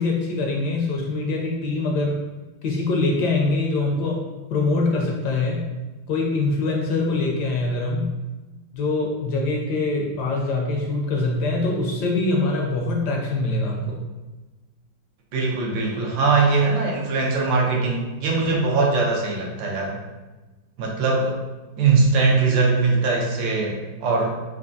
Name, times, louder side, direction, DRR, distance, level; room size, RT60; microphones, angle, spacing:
voice 1, 0.0-2.2 2.6-4.2 4.5-5.7 6.1-8.1 8.7-14.0, left 2 dB, 70° left, -1 dB, 1.1 m, -23 dB
voice 2, 15.3-20.0 20.8-21.4 21.8-24.4, right 4 dB, 80° right, -1 dB, 1.5 m, -21 dB
4.4 x 2.6 x 2.6 m, 1.2 s
omnidirectional pair, 2.0 m